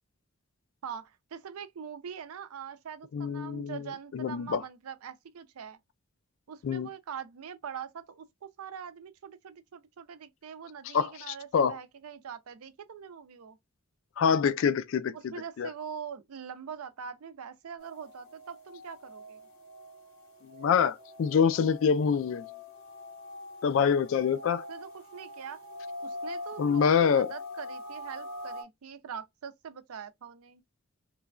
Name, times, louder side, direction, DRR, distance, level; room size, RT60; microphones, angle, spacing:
voice 1, 0.8-5.8 6.5-13.6 15.1-19.4 22.5-22.6 24.5-25.6 26.0-30.6, right 7 dB, 90° right, 0.5 m, -43 dB
voice 2, 3.1-3.8 4.1-4.6 6.6-6.9 10.9-11.8 14.2-15.3 15.6-15.7 20.5-22.4 23.6-24.6 26.6-27.3, left 6 dB, 65° left, 0.3 m, -26 dB
sound 1, 17.8-28.6, left 2 dB, 90° left, 1.6 m, -44 dB
3.0 x 2.2 x 2.4 m
head